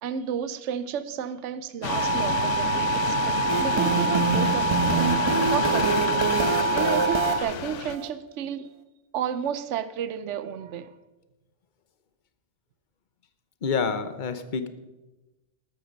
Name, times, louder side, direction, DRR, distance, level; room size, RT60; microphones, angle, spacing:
voice 1, 0.0-5.1 5.5-6.4 6.7-8.7 9.1-11.0, right 8 dB, 75° right, 1.0 m, -32 dB
sound 1, 1.8-8.0, left 10 dB, 85° left, 1.0 m, -30 dB
sound 2, 1.9-7.4, right 4 dB, 50° right, 1.2 m, -26 dB
sound 3, 3.5-8.1, right 4 dB, 25° right, 0.9 m, -27 dB
voice 2, 13.6-14.7, left 5 dB, 45° left, 1.0 m, -27 dB
13.0 x 13.0 x 5.2 m
omnidirectional pair, 1.2 m